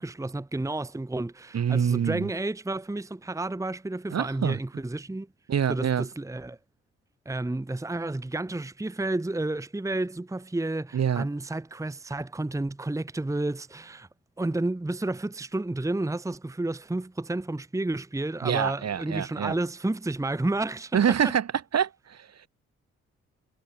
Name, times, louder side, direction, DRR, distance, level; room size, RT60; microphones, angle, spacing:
voice 1, 0.0-5.3 5.7-6.6 7.2-14.1 14.4-21.3, right 2 dB, 10° right, 1.3 m, -31 dB
voice 2, 1.5-2.3 4.1-4.6 5.5-6.0 10.9-11.3 18.4-19.5 20.9-21.5 21.7-22.3, right 8 dB, 45° right, 2.7 m, -26 dB
figure-of-eight pair, 40°, 35 cm